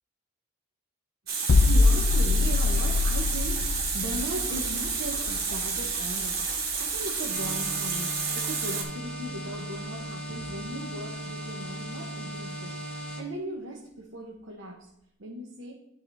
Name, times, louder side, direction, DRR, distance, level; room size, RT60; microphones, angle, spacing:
Water tap faucet, 1.3-8.8, right 5 dB, 55° right, 1.3 m, -30 dB
voice 1, 1.3-14.9 15.2-15.7, right 1 dB, 80° right, -1 dB, 1.0 m, -38 dB
sound 1, 1.5-7.2 7.5-7.7, left 3 dB, 70° left, 0.4 m, -25 dB
sound 2, 7.3-13.2, equal, 5° left, 1.7 m, -37 dB
11.0 x 3.8 x 3.4 m, 0.79 s
head